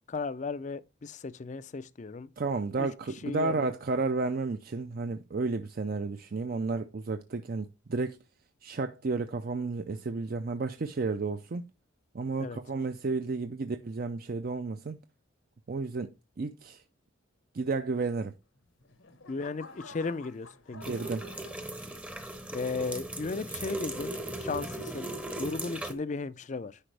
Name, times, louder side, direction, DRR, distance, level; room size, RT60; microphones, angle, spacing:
voice 1, 0.1-2.3 2.8-2.9 3.2-3.7 12.4-12.6 19.3-20.9 22.5-25.1 25.4-26.8, left 4 dB, 40° left, 0.4 m, -35 dB
voice 2, 2.4-8.2 8.6-11.7 12.1-15.0 15.7-16.8 17.5-18.4 20.7-21.3, right 3 dB, 45° right, 0.5 m, -32 dB
sound 1, 18.6-22.1 22.7-23.0, left 3 dB, 80° left, 1.3 m, -51 dB
sound 2, 20.8-25.9, right 1 dB, 5° right, 0.7 m, -38 dB
10.0 x 5.1 x 3.3 m
head